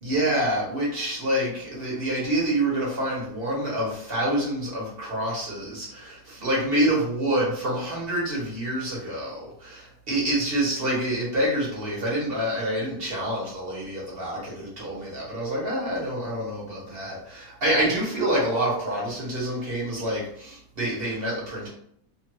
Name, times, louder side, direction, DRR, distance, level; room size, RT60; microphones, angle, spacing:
voice 1, 0.0-21.7, right 1 dB, 40° right, -5 dB, 1.0 m, -27 dB
2.9 x 2.5 x 3.0 m, 0.67 s
omnidirectional pair, 1.8 m